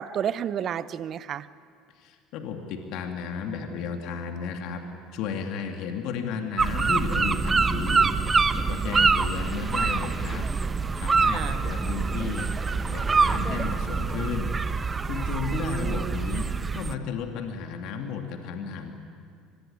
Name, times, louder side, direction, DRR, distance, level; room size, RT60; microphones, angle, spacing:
voice 1, 0.0-1.5 11.3-11.6 15.5-16.2, right 9 dB, 45° right, 16 dB, 0.8 m, -31 dB
voice 2, 2.0-4.8 5.1-8.1 8.5-10.5 11.0-12.5 12.9-14.6 15.1-18.9, left 6 dB, 65° left, 4 dB, 2.5 m, -33 dB
sound 1, 6.6-16.9, right 4 dB, 25° right, 1.1 m, -25 dB
24.5 x 20.5 x 9.5 m, 2.2 s
hypercardioid pair, 70°, 0 cm